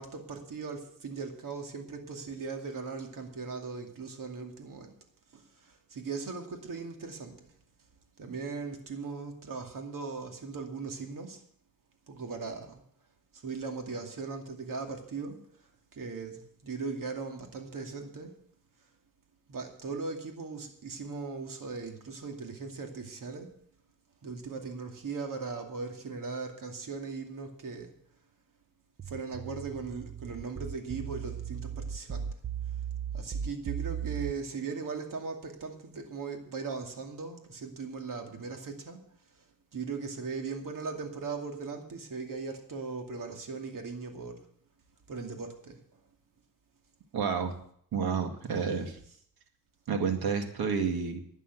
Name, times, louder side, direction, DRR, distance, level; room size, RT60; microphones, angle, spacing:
voice 1, 0.0-4.9 5.3-7.5 8.2-11.4 12.1-12.8 13.3-15.4 15.9-18.3 19.5-23.5 24.2-27.9 29.1-32.3 33.1-39.0 39.7-44.4 45.1-45.8, right 4 dB, 60° right, 3 dB, 2.5 m, -39 dB
sound 1, 29.0-34.3, right 8 dB, 35° right, 0.7 m, -36 dB
voice 2, 47.1-47.5 47.9-49.0 49.9-51.2, right 6 dB, 90° right, 5 dB, 2.2 m, -30 dB
12.0 x 9.0 x 8.1 m, 0.63 s
cardioid pair, 95°, 36 cm